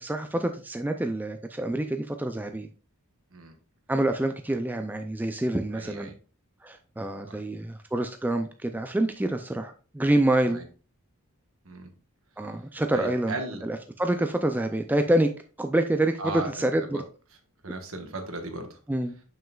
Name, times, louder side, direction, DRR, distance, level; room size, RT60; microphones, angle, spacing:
voice 1, 0.0-2.7 3.9-6.1 6.6-10.6 12.4-13.4 13.6-15.3 15.6-17.0 18.9-19.2, right 1 dB, 10° right, 6 dB, 0.3 m, -27 dB
voice 2, 5.7-6.1 7.3-7.4 10.5-10.6 11.6-11.9 12.9-13.6 16.2-17.0 17.6-18.8, right 2 dB, 65° right, 5 dB, 1.2 m, -36 dB
7.0 x 6.2 x 2.3 m, 0.36 s
head